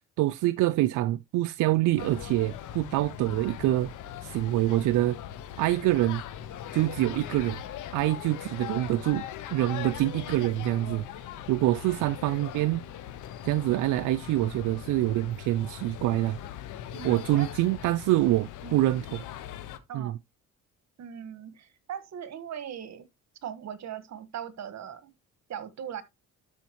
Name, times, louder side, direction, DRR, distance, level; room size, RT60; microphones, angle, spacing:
voice 1, 0.2-3.9 4.2-5.2 5.6-6.2 6.7-7.6 7.9-9.3 9.5-11.1 11.5-12.8 13.4-16.4 17.0-19.2 19.9-20.2, right 16 dB, 85° right, 0.5 m, -25 dB
sound 1, 2.0-19.8, left 11 dB, 85° left, 1.0 m, -40 dB
voice 2, 16.9-17.5 18.6-18.9 19.9-20.2 21.0-23.0 23.4-25.1 25.5-26.0, right 9 dB, 65° right, 1.5 m, -39 dB
12.5 x 5.0 x 3.0 m
cardioid pair, 90°, 30 cm